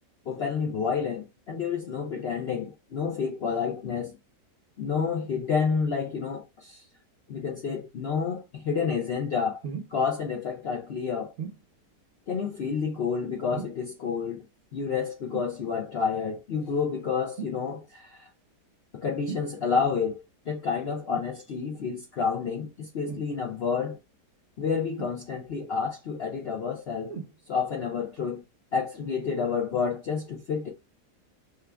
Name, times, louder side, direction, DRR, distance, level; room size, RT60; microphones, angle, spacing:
voice 1, 0.3-4.1 4.8-6.8 7.3-9.6 9.9-11.3 12.3-14.4 14.7-18.3 18.9-20.2 20.5-24.0 24.6-27.1 27.5-28.4 28.7-30.7, left 6 dB, 85° left, 0.5 m, -29 dB
sound 1, 9.6-10.0 11.4-11.6 13.5-13.9 15.3-15.6 17.4-17.6 19.3-19.5 21.1-21.3 23.0-23.3 25.0-25.5 27.1-27.4 28.2-28.3, right 6 dB, 55° right, 1.0 m, -38 dB
3.6 x 2.3 x 3.3 m
omnidirectional pair, 1.8 m